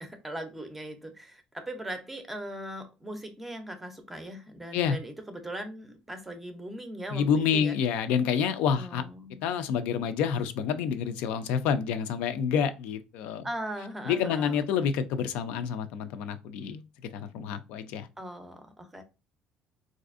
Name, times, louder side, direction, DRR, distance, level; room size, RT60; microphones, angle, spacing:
voice 1, 0.0-7.8 8.7-9.4 13.4-14.6 18.2-19.0, right 1 dB, 5° right, 0.5 m, -39 dB
voice 2, 7.1-9.0 9.4-13.5 14.1-16.8 17.1-18.1, left 7 dB, 75° left, 0.4 m, -28 dB
4.1 x 2.5 x 2.4 m
cardioid pair, 170°, 2 cm